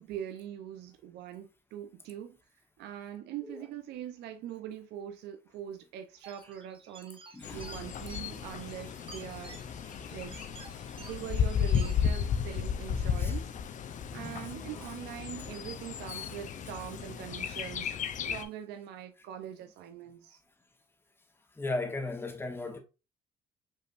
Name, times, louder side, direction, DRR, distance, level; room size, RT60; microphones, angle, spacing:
voice 1, 0.0-2.4 2.8-10.4 11.0-13.5 14.1-20.4, right 10 dB, 80° right, 0.6 m, -43 dB
sound 1, 6.2-12.2, right 4 dB, 30° right, 1.0 m, -53 dB
voice 2, 7.3-7.7 13.2-13.3 14.1-14.5 16.1-16.3 21.6-22.8, left 2 dB, 15° left, 1.0 m, -36 dB
Bird, 7.4-18.5, left 7 dB, 50° left, 0.6 m, -34 dB
5.4 x 3.3 x 2.5 m
cardioid pair, 110°, 17 cm